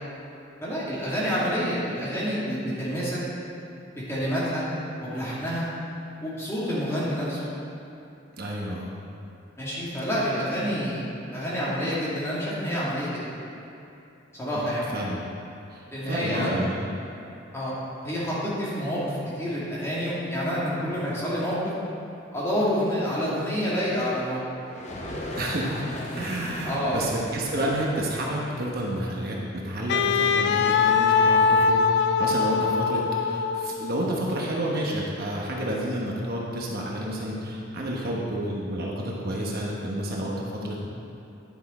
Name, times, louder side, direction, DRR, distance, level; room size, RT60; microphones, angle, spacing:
voice 1, 0.6-3.2 4.0-4.7 5.0-5.7 6.2-7.5 9.6-13.2 14.3-14.9 15.9-16.6 17.5-17.7 18.0-21.6 22.3-24.4 26.6-27.2, equal, 15° left, -9 dB, 2.1 m, -28 dB
voice 2, 8.4-8.9 14.5-14.7 14.9-15.2 15.7-16.9 25.4-40.9, right 1 dB, 50° right, -3 dB, 1.0 m, -30 dB
sound 1, 24.6-30.3, left 1 dB, 35° left, 1.0 m, -39 dB
Wind instrument woodwind instrument, 29.9-34.0, left 5 dB, 55° left, 0.3 m, -22 dB
10.5 x 6.5 x 4.2 m, 2.8 s
head